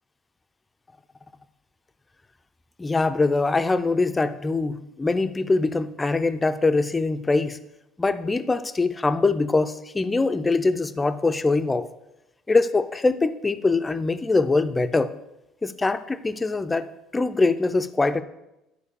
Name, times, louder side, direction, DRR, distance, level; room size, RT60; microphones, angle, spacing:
voice 1, 2.8-7.6 8.0-11.9 12.5-15.1 15.6-16.9 17.1-18.2, left 3 dB, 10° left, 11 dB, 0.4 m, -23 dB
11.0 x 4.5 x 6.7 m, 0.90 s
cardioid pair, 170°, 0 cm